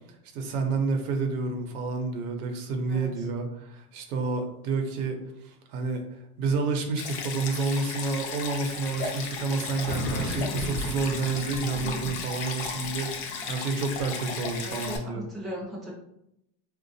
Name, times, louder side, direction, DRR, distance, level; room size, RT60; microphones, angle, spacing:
voice 1, 0.3-5.2 5.4-6.0 6.4-15.2, right 4 dB, 70° right, 4 dB, 0.8 m, -29 dB
voice 2, 2.9-3.3 14.6-15.9, equal, ahead, -8 dB, 0.6 m, -38 dB
Stream, 7.0-15.0, left 5 dB, 45° left, 0.5 m, -35 dB
sound 1, 8.8-15.0, left 2 dB, 75° left, 0.9 m, -37 dB
3.9 x 2.4 x 2.6 m, 0.79 s
supercardioid pair, 165°, 46 cm